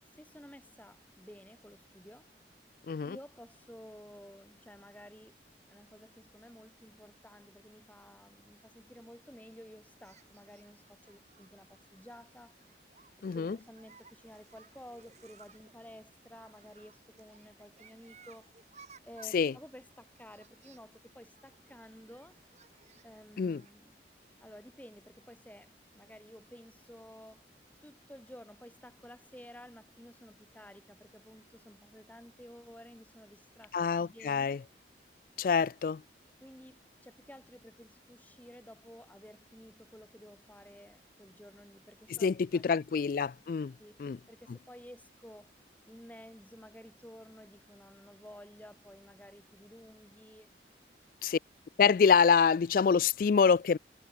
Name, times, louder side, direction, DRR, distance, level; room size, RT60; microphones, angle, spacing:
voice 1, 0.2-2.3 3.0-5.4 5.7-12.6 13.2-18.5 19.0-22.4 23.0-23.9 24.4-27.5 27.8-34.6 36.4-42.8 43.8-44.0 44.3-45.5 45.9-50.5, equal, 10° left, 2.9 m, -53 dB
voice 2, 2.9-3.2 13.2-13.6 19.3-19.5 23.4-23.6 33.7-34.6 35.4-36.0 42.1-43.7 44.0-44.2 51.2-51.4 51.8-53.8, left 6 dB, 50° left, 0.3 m, -26 dB
sound 1, 10.0-23.7, right 5 dB, 40° right, 7.2 m, -61 dB
head